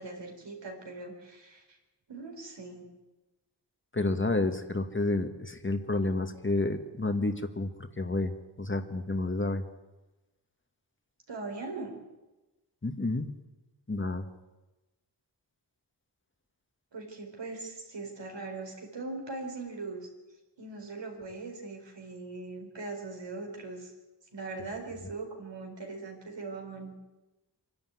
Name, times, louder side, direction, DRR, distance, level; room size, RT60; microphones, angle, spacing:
voice 1, 0.0-1.8 2.1-2.9 11.3-11.9 16.9-20.1 20.6-23.9 24.3-26.9, right 3 dB, 90° right, 1 dB, 4.6 m, -40 dB
voice 2, 3.9-9.6 12.8-13.3 13.9-14.3, left 2 dB, 30° left, 7 dB, 1.6 m, -30 dB
25.5 x 12.0 x 9.5 m, 1.1 s
wide cardioid pair, 90°, 42 cm